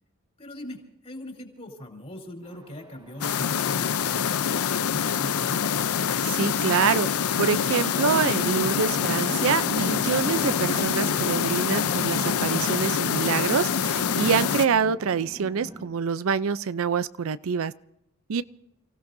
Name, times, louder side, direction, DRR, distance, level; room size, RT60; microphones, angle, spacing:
voice 1, 0.4-5.9 18.4-18.5, left 1 dB, 30° left, 3.4 m, -41 dB
Chatter / Traffic noise roadway noise / Train, 2.4-15.9, equal, 20° right, 1.3 m, -39 dB
sound 1, 3.2-14.7, left 7 dB, 90° left, 0.6 m, -25 dB
voice 2, 6.2-7.1 7.4-17.7 18.3-18.4, right 6 dB, 70° right, 0.5 m, -26 dB
29.5 x 16.5 x 2.6 m
head